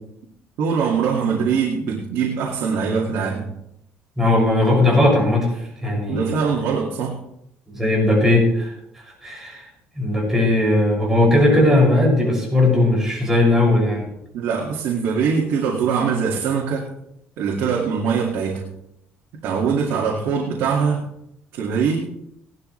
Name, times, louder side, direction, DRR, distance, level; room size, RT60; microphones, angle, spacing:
voice 1, 0.6-3.5 6.1-7.2 14.3-16.9 17.4-18.7 19.4-21.0 21.5-22.0, right 6 dB, 75° right, -2 dB, 2.2 m, -22 dB
voice 2, 4.2-6.4 7.7-8.7 9.0-9.7 10.0-14.1, left 1 dB, 10° right, -3 dB, 6.6 m, -18 dB
18.0 x 12.0 x 3.3 m, 0.77 s
cardioid pair, 130°, 4 cm